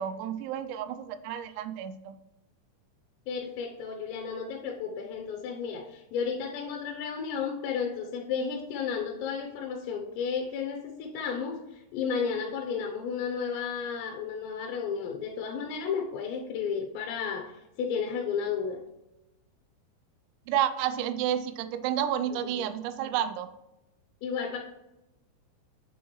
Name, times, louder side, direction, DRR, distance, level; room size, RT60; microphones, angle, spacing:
voice 1, 0.0-2.2 20.5-23.5, right 10 dB, 85° right, 12 dB, 2.8 m, -30 dB
voice 2, 3.3-17.5 17.8-18.8 22.3-22.4 24.2-24.6, left 6 dB, 80° left, 2 dB, 3.0 m, -33 dB
6.9 x 6.2 x 3.1 m, 0.92 s
omnidirectional pair, 5.1 m